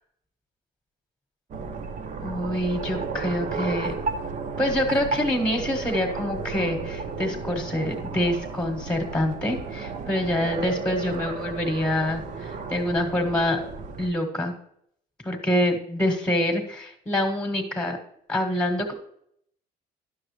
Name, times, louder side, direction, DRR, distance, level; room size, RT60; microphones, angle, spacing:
sound 1, 1.5-14.1, right 4 dB, 50° right, 0.9 m, -33 dB
voice 1, 2.2-3.9 4.6-13.6 14.0-14.5 15.2-18.0 18.3-18.9, left 1 dB, 5° left, 5 dB, 1.3 m, -26 dB
11.0 x 6.1 x 3.2 m, 0.70 s
cardioid pair, 110°, 17 cm